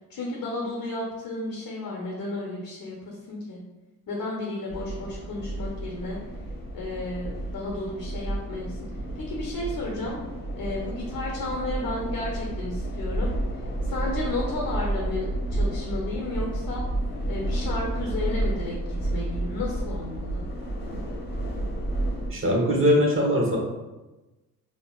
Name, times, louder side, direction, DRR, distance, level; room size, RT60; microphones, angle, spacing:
voice 1, 0.1-3.6 4.1-6.2 6.7-8.9 9.1-10.2 10.6-13.3 13.8-16.8 17.3-18.7 19.0-20.4, left 2 dB, 55° left, -2 dB, 0.8 m, -33 dB
sound 1, 4.7-22.3, right 1 dB, 25° left, 1.1 m, -31 dB
voice 2, 22.3-23.6, equal, 30° right, -2 dB, 1.0 m, -21 dB
4.1 x 2.0 x 2.3 m, 1.1 s
supercardioid pair, 55°, 40 cm